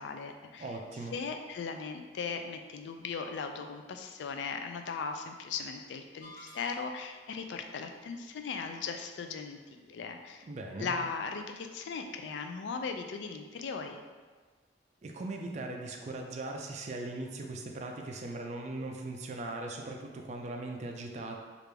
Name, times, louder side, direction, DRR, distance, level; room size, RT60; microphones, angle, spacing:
voice 1, 0.0-0.7 1.1-10.5 10.8-14.0, left 5 dB, 70° left, 5 dB, 0.3 m, -38 dB
voice 2, 0.6-1.2 10.4-11.0 15.0-21.4, right 2 dB, 40° right, 2 dB, 0.3 m, -39 dB
sound 1, 6.2-7.2, equal, 90° left, 0.7 m, -52 dB
3.3 x 2.5 x 3.3 m, 1.4 s
head